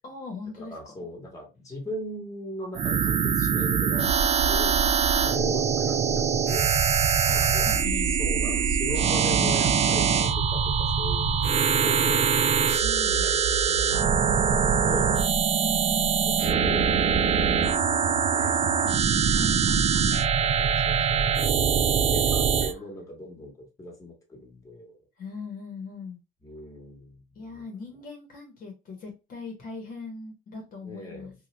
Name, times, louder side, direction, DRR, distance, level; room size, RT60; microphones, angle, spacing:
voice 1, 0.0-0.7 4.8-5.8 7.2-9.7 12.8-13.2 15.6-16.4 18.3-20.1 22.3-22.4 25.2-26.2 27.3-31.3, left 4 dB, 55° left, 2 dB, 1.0 m, -41 dB
voice 2, 0.6-4.1 4.5-4.7 5.4-6.8 7.3-7.7 8.0-11.4 11.8-12.3 13.0-14.0 14.4-15.2 16.4-17.2 17.7-18.5 20.4-21.4 21.9-25.0 26.4-27.2 27.5-27.6 30.8-31.3, equal, 20° left, 1 dB, 1.2 m, -38 dB
sound 1, 2.7-22.7, right 7 dB, 40° right, 0.4 m, -23 dB
2.7 x 2.3 x 3.1 m, 0.28 s
cardioid pair, 110°, 17 cm